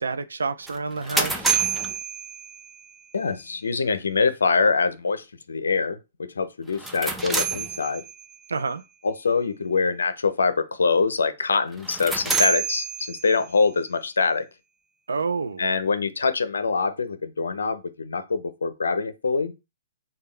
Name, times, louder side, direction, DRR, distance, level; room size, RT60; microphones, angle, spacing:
voice 1, 0.0-1.5 8.5-8.8 15.1-15.6, right 4 dB, 85° right, 0.4 m, -28 dB
sound 1, 0.7-2.9 6.7-8.4 11.7-13.5, right 5 dB, 5° right, 0.6 m, -28 dB
voice 2, 3.1-8.0 9.0-14.4 15.6-19.5, left 4 dB, 85° left, 0.5 m, -24 dB
3.4 x 2.2 x 3.3 m
hypercardioid pair, 125°, 0 cm